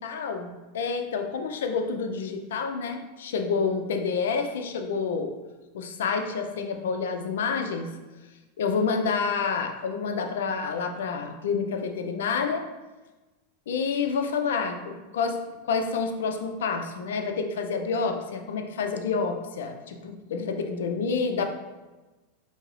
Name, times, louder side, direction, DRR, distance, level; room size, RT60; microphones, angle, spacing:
voice 1, 0.0-5.3 5.7-7.9 8.6-12.6 13.7-21.5, left 5 dB, 75° left, 5 dB, 0.5 m, -28 dB
4.5 x 2.7 x 3.2 m, 1.2 s
hypercardioid pair, 100°, 0 cm